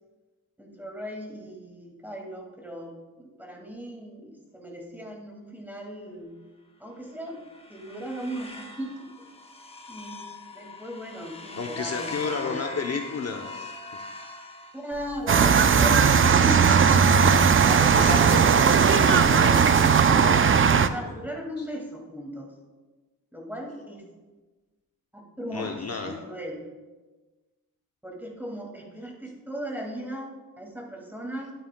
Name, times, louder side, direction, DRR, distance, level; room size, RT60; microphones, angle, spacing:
voice 1, 0.6-6.3 6.8-7.4 7.7-8.9 9.2-9.3 9.6-10.2 10.5-12.8 14.7-17.1 17.3-19.1 20.8-22.5 23.3-24.0 25.1-26.7 28.0-31.5, equal, 5° right, -1 dB, 2.0 m, -37 dB
sound 1, 7.0-15.3, left 3 dB, 15° left, 0.8 m, -42 dB
voice 2, 11.6-13.7 17.9-21.1 21.6-21.7 25.5-26.2, left 4 dB, 45° left, 3 dB, 0.7 m, -33 dB
sound 2, 14.9-20.3, right 5 dB, 70° right, 1.1 m, -40 dB
sound 3, 15.3-20.9, right 6 dB, 40° right, 0.4 m, -18 dB
11.5 x 9.1 x 2.2 m, 1.2 s
wide cardioid pair, 90°, 34 cm